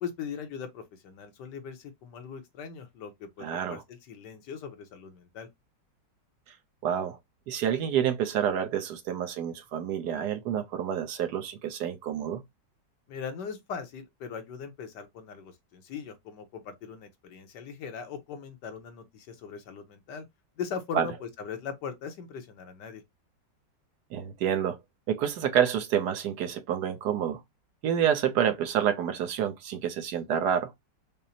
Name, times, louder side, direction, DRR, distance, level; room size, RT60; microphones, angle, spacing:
voice 1, 0.0-5.5 13.1-20.2 20.6-23.0, left 6 dB, 80° left, 1.5 m, -40 dB
voice 2, 3.4-3.8 6.5-6.6 6.8-7.2 7.5-12.4 20.9-21.1 24.1-24.8 25.1-27.4 27.8-30.7, right 9 dB, 70° right, 1.2 m, -28 dB
5.3 x 2.0 x 2.8 m
omnidirectional pair, 1.9 m